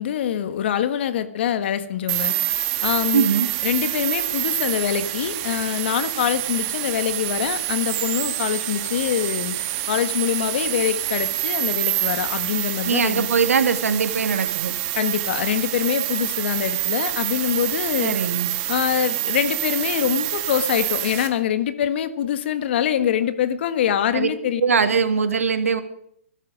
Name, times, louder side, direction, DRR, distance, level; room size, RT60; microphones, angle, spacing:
voice 1, 0.0-2.3 2.8-3.3 3.6-9.5 9.9-13.3 15.0-18.2 18.7-24.6, left 10 dB, 50° left, 12 dB, 1.5 m, -24 dB
sound 1, 2.1-21.3, right 15 dB, 30° right, 1.9 m, -26 dB
voice 2, 3.1-3.5 12.8-14.7 18.0-18.5 24.1-24.3 24.6-25.8, right 6 dB, 85° right, 9 dB, 2.2 m, -21 dB
22.0 x 12.5 x 5.1 m, 0.70 s
hypercardioid pair, 150°, 8 cm